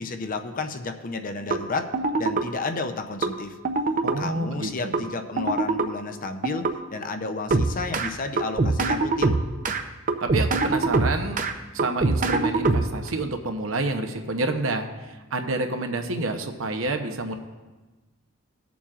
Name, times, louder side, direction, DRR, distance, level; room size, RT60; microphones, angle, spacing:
voice 1, 0.0-1.9 2.2-3.6 4.2-9.4, left 3 dB, 40° left, 7 dB, 0.6 m, -32 dB
sound 1, 1.5-1.6 1.9-2.5 3.2-3.3 3.7-4.2 4.9-5.0 5.4-5.9 6.4-6.7 7.5-8.1 8.4-9.8 10.1-11.5 11.8-13.1, right 3 dB, 40° right, 0.6 m, -23 dB
voice 2, 4.0-5.0 10.2-11.4 11.7-17.3, right 2 dB, 75° right, 5 dB, 0.8 m, -28 dB
20.0 x 7.0 x 2.5 m, 1.2 s
head